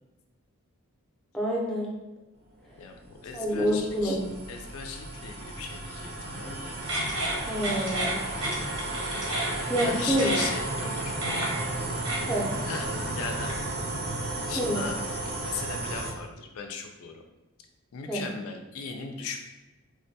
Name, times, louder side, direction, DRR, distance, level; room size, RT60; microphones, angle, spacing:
voice 1, 1.3-1.9 3.3-4.2 7.5-8.2 9.7-10.4 12.3-12.5 14.6-14.8 18.1-18.2, equal, 5° left, -4 dB, 0.5 m, -27 dB
sound 1, 2.6-16.1, right 2 dB, 45° right, 0.5 m, -34 dB
voice 2, 2.8-4.2 4.5-6.8 9.8-11.2 12.7-12.9 13.1-13.8 14.2-17.2 17.9-19.4, left 5 dB, 65° left, 4 dB, 0.3 m, -38 dB
sound 2, 6.8-13.7, right 1 dB, 75° right, 0.9 m, -33 dB
3.4 x 2.2 x 2.7 m, 1.1 s
head